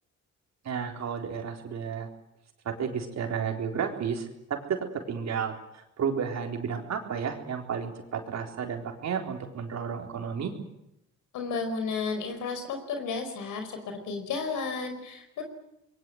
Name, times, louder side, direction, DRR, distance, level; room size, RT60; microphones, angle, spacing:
voice 1, 0.6-2.1 2.6-10.5, right 6 dB, 60° right, 3 dB, 4.0 m, -32 dB
voice 2, 11.3-15.4, left 4 dB, 80° left, 6 dB, 4.9 m, -33 dB
26.5 x 22.0 x 7.9 m, 0.85 s
cardioid pair, 90°, 30 cm